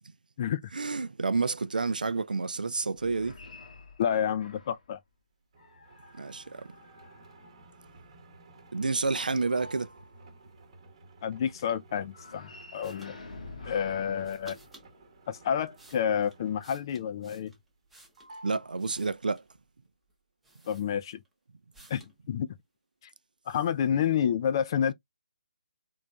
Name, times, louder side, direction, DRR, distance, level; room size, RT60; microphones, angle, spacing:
voice 1, 0.7-3.4 6.2-6.6 8.7-9.9 18.4-19.4, right 4 dB, 70° right, 0.4 m, -29 dB
sound 1, 2.9-4.9 5.6-8.0 12.1-15.2, left 3 dB, 55° left, 0.8 m, -49 dB
voice 2, 4.0-5.0 11.2-13.2 13.7-14.6 15.3-17.5 20.7-21.2 21.9-22.5 23.5-24.9, left 8 dB, 30° left, 0.3 m, -29 dB
sound 2, 5.5-17.0 17.3-17.9 18.2-19.5, right 2 dB, 40° right, 1.0 m, -54 dB
sound 3, 12.8-13.1 14.2-14.9 15.5-18.3 18.8-19.6 20.1-20.2 20.4-21.3 21.7-22.2, right 1 dB, 5° right, 0.7 m, -56 dB
3.8 x 3.1 x 2.2 m
figure-of-eight pair, 145°, 5 cm